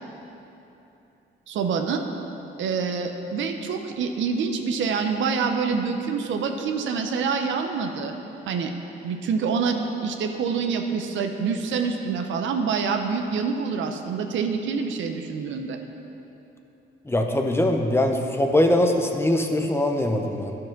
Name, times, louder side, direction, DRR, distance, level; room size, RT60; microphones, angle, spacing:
voice 1, 1.5-2.0 2.6-8.1 8.5-8.7 9.0-15.8, right 5 dB, 75° right, 5 dB, 0.7 m, -26 dB
voice 2, 17.1-20.6, left 1 dB, 10° left, 3 dB, 0.7 m, -22 dB
10.5 x 4.8 x 5.9 m, 3.0 s
cardioid pair, 90°, 20 cm